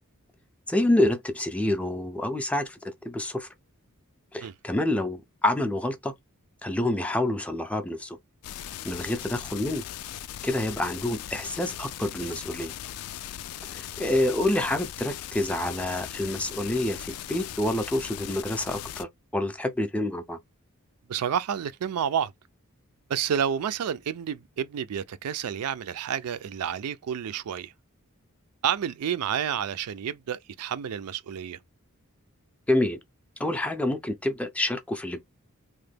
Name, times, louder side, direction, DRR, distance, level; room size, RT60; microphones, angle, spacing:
voice 1, 0.7-3.5 4.3-6.1 6.6-8.2 8.8-9.8 10.4-12.7 13.6-20.4 32.7-33.0 33.4-35.2, left 1 dB, 5° left, 0.4 m, -27 dB
sound 1, 8.4-19.0, left 11 dB, 80° left, 0.3 m, -39 dB
voice 2, 21.1-22.3 23.1-27.7 28.6-31.6, right 8 dB, 90° right, 0.4 m, -30 dB
3.0 x 2.1 x 3.3 m
head